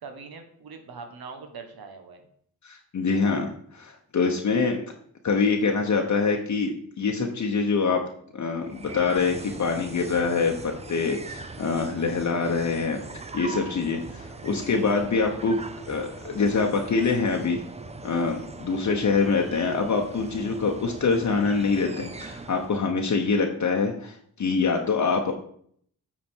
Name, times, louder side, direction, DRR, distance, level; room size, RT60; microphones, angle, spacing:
voice 1, 0.0-2.3, right 5 dB, 70° right, 6 dB, 1.4 m, -42 dB
voice 2, 2.6-4.8 5.2-6.7 7.0-8.0 8.3-13.0 13.3-15.6 15.8-17.6 18.0-25.3, left 4 dB, 50° left, 2 dB, 0.9 m, -25 dB
sound 1, 8.6-22.9, right 3 dB, 20° right, 0.6 m, -41 dB
8.6 x 4.2 x 4.5 m, 0.63 s
cardioid pair, 100°, 37 cm